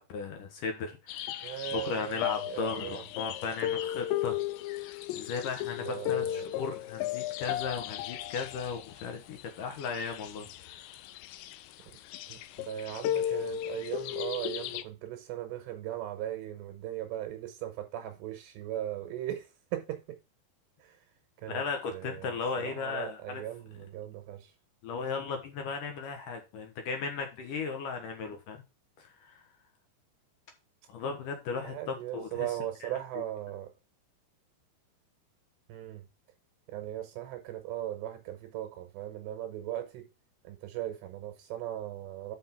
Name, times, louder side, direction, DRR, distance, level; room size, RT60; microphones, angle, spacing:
voice 1, 0.0-4.4 4.7-10.9 21.5-23.4 24.8-28.6 29.0-29.4 30.9-32.5 32.8-32.9, left 5 dB, 65° left, 2.2 m, -36 dB
sound 1, 1.1-14.8, left 12 dB, 80° left, 2.8 m, -35 dB
voice 2, 1.4-3.0 5.7-6.5 12.3-20.2 20.8-21.0 21.4-21.6 21.9-24.5 31.6-33.7 35.7-36.1 36.7-40.1 40.4-42.4, right 12 dB, 80° right, 3.1 m, -38 dB
6.3 x 5.9 x 5.9 m
omnidirectional pair, 5.2 m